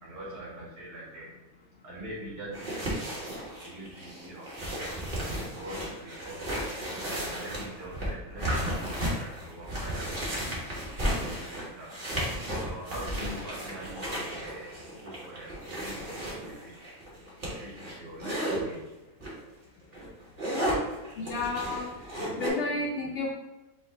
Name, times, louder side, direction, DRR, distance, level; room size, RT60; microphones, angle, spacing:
voice 1, 0.0-1.3 1.8-3.3 3.6-4.7 5.3-6.5 7.1-10.5 11.2-12.0 12.6-14.8 15.0-15.6 15.8-16.8 17.5-18.9, right 1 dB, 75° right, -8 dB, 1.8 m, -43 dB
sound 1, 2.5-18.6 19.2-19.4 19.8-22.5, equal, 35° right, 1.3 m, -34 dB
voice 2, 21.2-22.0 22.3-23.3, left 3 dB, 65° left, -1 dB, 0.7 m, -32 dB
5.1 x 2.5 x 3.9 m, 1.1 s
omnidirectional pair, 1.6 m